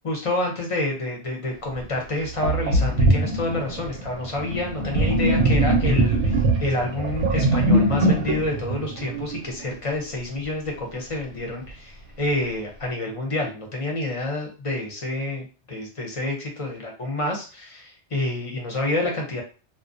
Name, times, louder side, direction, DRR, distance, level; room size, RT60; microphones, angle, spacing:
voice 1, 0.0-19.4, left 2 dB, 40° left, 0 dB, 0.5 m, -28 dB
Sink (filling or washing), 1.7-1.8 2.4-9.7, right 2 dB, 85° right, 0.9 m, -22 dB
2.4 x 2.1 x 2.5 m, 0.34 s
omnidirectional pair, 1.2 m